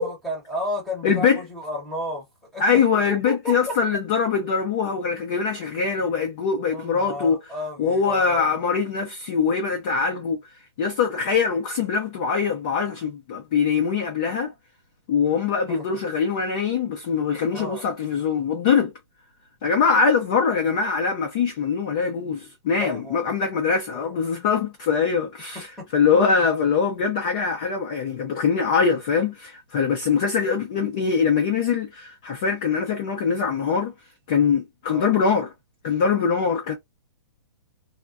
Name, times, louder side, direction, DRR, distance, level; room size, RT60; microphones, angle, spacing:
voice 1, 0.0-2.3 2.5-3.8 5.1-5.3 5.7-5.8 6.7-8.6 15.7-16.0 17.5-17.8 22.6-23.4 23.9-24.2 25.5-25.9 34.9-35.2, left 1 dB, ahead, 0.7 m, -33 dB
voice 2, 1.0-1.4 2.6-7.4 7.8-10.4 10.8-14.5 15.1-18.9 19.6-25.6 25.9-33.9 34.3-35.5 35.8-36.7, left 6 dB, 15° left, 0.3 m, -23 dB
3.4 x 2.1 x 2.3 m
hypercardioid pair, 180°, 14 cm